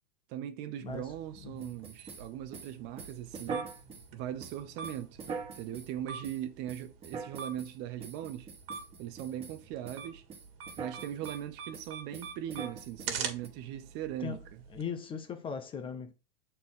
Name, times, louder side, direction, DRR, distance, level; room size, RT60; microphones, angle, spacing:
voice 1, 0.3-3.7 4.1-5.2 5.6-8.5 9.0-10.2 10.8-14.4, right 11 dB, 35° right, 0.6 m, -39 dB
sound 1, 0.9-14.8, right 6 dB, 65° right, 1.8 m, -45 dB
sound 2, 1.6-4.1 4.4-5.9 6.2-6.4 6.7-7.7 8.0-9.6 9.8-10.0 10.3-11.4 11.7-13.5, right 5 dB, 20° right, 1.4 m, -43 dB
voice 2, 14.7-16.1, left 6 dB, 15° left, 0.6 m, -39 dB
6.9 x 4.2 x 3.8 m
hypercardioid pair, 130°, 31 cm